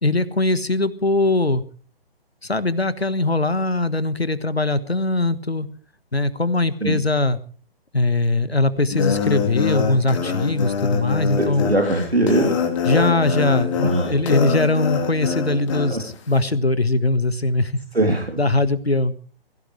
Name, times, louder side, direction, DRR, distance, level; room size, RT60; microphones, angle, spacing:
voice 1, 0.0-1.6 2.4-5.7 6.1-7.4 7.9-11.6 12.9-17.8 18.4-19.1, left 2 dB, 90° left, 14 dB, 1.5 m, -21 dB
sound 1, 8.9-15.9, left 6 dB, 30° left, 3.9 m, -24 dB
voice 2, 11.4-12.6 13.8-14.1 15.9-16.0 17.9-18.4, right 1 dB, 90° right, 2 dB, 3.3 m, -21 dB
22.5 x 16.5 x 3.3 m, 0.40 s
figure-of-eight pair, 135°, 30 cm